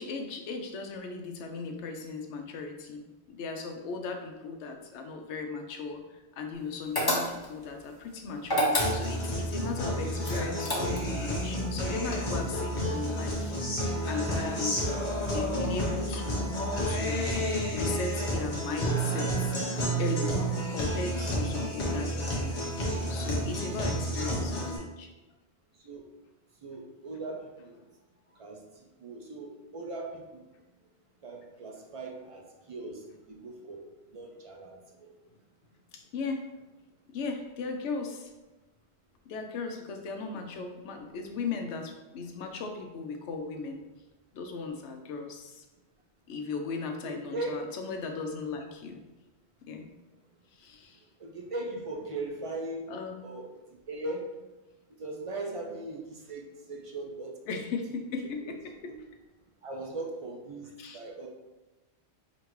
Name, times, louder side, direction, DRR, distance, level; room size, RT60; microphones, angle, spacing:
voice 1, 0.0-13.5 14.1-14.9 15.3-16.5 16.8-17.3 17.7-19.6 20.0-20.4 20.7-22.5 23.1-25.1 35.9-36.5 37.1-38.3 39.3-43.8 44.3-45.6 46.3-49.0 49.7-49.9 50.5-51.0 52.9-53.3 57.5-59.0 60.8-61.0, left 4 dB, 80° left, 4 dB, 0.9 m, -37 dB
sound 1, 6.9-7.6 8.4-9.3 10.2-11.2, left 1 dB, 30° left, 0.5 m, -28 dB
Guitar, 8.8-24.8, equal, 45° left, 1.0 m, -30 dB
voice 2, 26.6-27.8 28.3-30.4 31.2-33.8 34.1-35.1 47.0-47.6 51.2-52.9 53.2-53.5 53.9-54.3 55.0-57.4 58.4-58.5 58.8-59.0 59.6-61.3, right 2 dB, 60° right, 1 dB, 0.3 m, -39 dB
5.0 x 2.5 x 3.0 m, 1.1 s
omnidirectional pair, 1.2 m